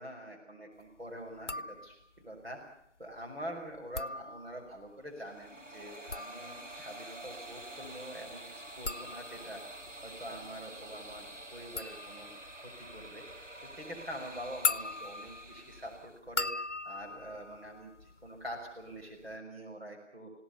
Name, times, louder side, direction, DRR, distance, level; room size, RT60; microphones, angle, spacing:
voice 1, 0.0-2.6 3.0-9.6 10.0-13.2 13.8-16.5 16.8-20.3, equal, 55° right, 0 dB, 6.0 m, -45 dB
sound 1, 1.4-2.2 3.8-4.8 5.8-18.5 18.8-19.4, left 4 dB, 75° left, 0.8 m, -40 dB
sound 2, 5.0-16.2, right 1 dB, 85° right, 2.2 m, -48 dB
28.5 x 17.5 x 6.8 m, 0.74 s
figure-of-eight pair, 180°, 36 cm